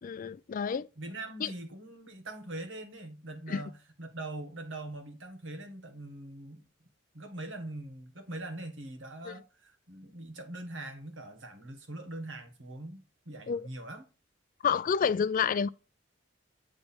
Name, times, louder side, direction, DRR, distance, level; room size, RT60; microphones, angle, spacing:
voice 1, 0.0-0.9 1.4-1.5 3.5-3.6 9.3-9.4 13.5-13.6 14.6-15.7, left 6 dB, 45° left, 0.3 m, -29 dB
voice 2, 1.0-6.6 7.1-14.0, right 2 dB, 85° right, 1.6 m, -42 dB
8.7 x 3.2 x 4.3 m
head